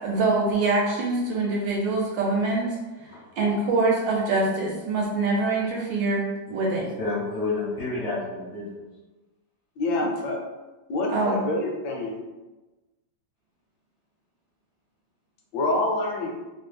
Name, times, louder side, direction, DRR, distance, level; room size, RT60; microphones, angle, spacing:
voice 1, 0.0-2.8 3.4-6.2 6.5-6.9 11.1-11.4, right 3 dB, 75° right, -3 dB, 1.3 m, -24 dB
voice 2, 6.5-8.8, left 3 dB, 55° left, -7 dB, 0.7 m, -30 dB
voice 3, 9.8-10.4 10.9-12.2 15.5-16.3, left 2 dB, 75° left, 0 dB, 1.1 m, -26 dB
3.2 x 2.0 x 3.3 m, 1.2 s
omnidirectional pair, 2.1 m